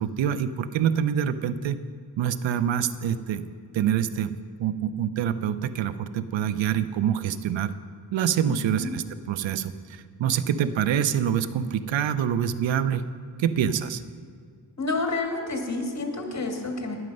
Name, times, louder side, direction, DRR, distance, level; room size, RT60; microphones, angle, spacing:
voice 1, 0.0-1.8 2.2-3.4 3.7-7.7 8.1-13.0 13.4-14.0, right 9 dB, 85° right, 14 dB, 0.6 m, -26 dB
voice 2, 8.5-9.0 14.8-17.0, left 3 dB, 40° left, 3 dB, 1.9 m, -29 dB
11.0 x 10.5 x 5.4 m, 2.2 s
cardioid pair, 85°, 44 cm